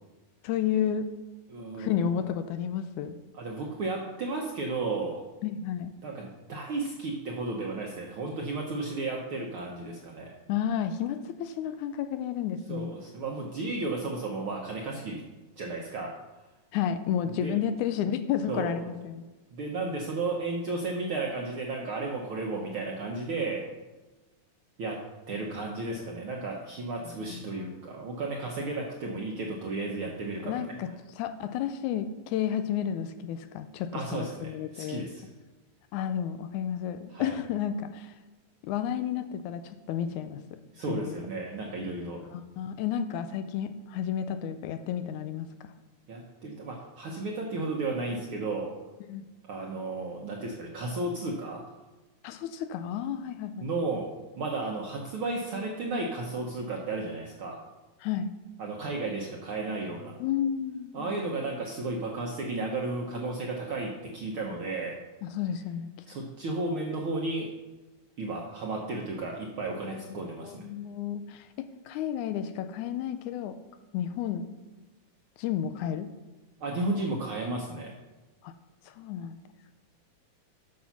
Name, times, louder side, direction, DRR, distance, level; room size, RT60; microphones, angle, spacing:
voice 1, 0.4-1.1 1.8-3.2 5.4-5.9 10.5-12.9 16.7-19.2 27.1-27.9 30.4-30.9 31.2-35.1 35.9-38.2 38.6-40.4 40.9-41.1 42.2-45.7 49.1-49.2 52.2-53.7 58.0-58.3 60.2-61.1 65.2-65.9 69.8-73.6 73.9-74.5 75.4-76.1 78.4-78.5 78.9-79.4, left 9 dB, 80° left, 10 dB, 1.9 m, -32 dB
voice 2, 1.5-2.0 3.3-5.2 6.0-10.3 12.7-15.2 15.6-16.1 17.3-17.6 18.5-18.8 19.5-23.6 24.8-25.0 25.3-30.6 33.9-35.2 37.1-37.3 40.7-42.2 46.1-48.7 49.4-51.6 53.6-57.6 58.6-60.2 60.9-64.9 66.1-67.5 68.2-70.7 76.6-77.9, right 3 dB, 65° right, -1 dB, 1.3 m, -33 dB
8.5 x 6.6 x 5.8 m, 1.2 s
omnidirectional pair, 3.6 m